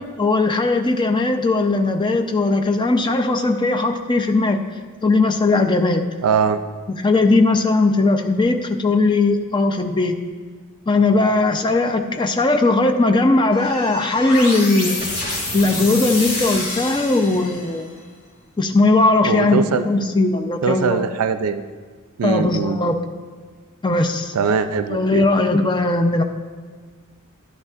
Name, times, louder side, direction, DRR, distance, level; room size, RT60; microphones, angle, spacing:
voice 1, 0.2-4.6 5.0-6.1 7.0-10.2 10.9-15.1 15.5-17.9 18.6-21.1 22.2-23.0 23.8-24.3 24.9-26.2, left 2 dB, 20° left, 5 dB, 0.5 m, -18 dB
voice 2, 6.2-6.6 19.2-19.9 20.6-21.6 22.2-22.8 24.3-25.3, right 5 dB, 80° right, 10 dB, 0.4 m, -21 dB
sound 1, 13.5-17.8, left 2 dB, 35° left, 3.1 m, -27 dB
11.5 x 11.5 x 2.4 m, 1.5 s
head